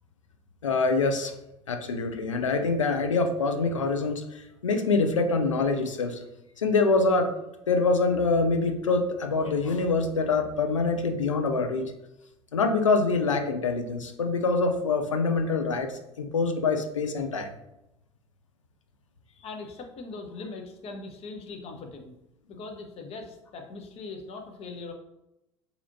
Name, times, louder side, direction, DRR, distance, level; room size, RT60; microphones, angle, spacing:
voice 1, 0.6-1.3 1.7-6.2 6.6-7.3 7.7-11.8 12.5-15.9 16.2-17.5, left 3 dB, 85° left, 6 dB, 0.5 m, -25 dB
voice 2, 19.4-22.1 22.5-24.9, left 3 dB, 40° left, 4 dB, 0.8 m, -40 dB
4.1 x 2.8 x 2.6 m, 0.88 s
figure-of-eight pair, 70°, 16 cm